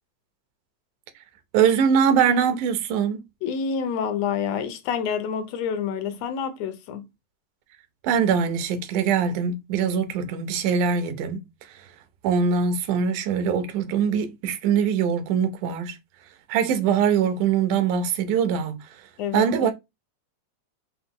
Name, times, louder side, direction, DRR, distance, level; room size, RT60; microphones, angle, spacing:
voice 1, 1.5-3.2 8.0-11.9 12.2-16.0 16.5-19.1 19.3-19.7, right 7 dB, 85° right, 2.2 m, -23 dB
voice 2, 3.4-7.0 19.2-19.7, left 7 dB, 75° left, 1.6 m, -28 dB
5.6 x 2.1 x 3.5 m
omnidirectional pair, 3.5 m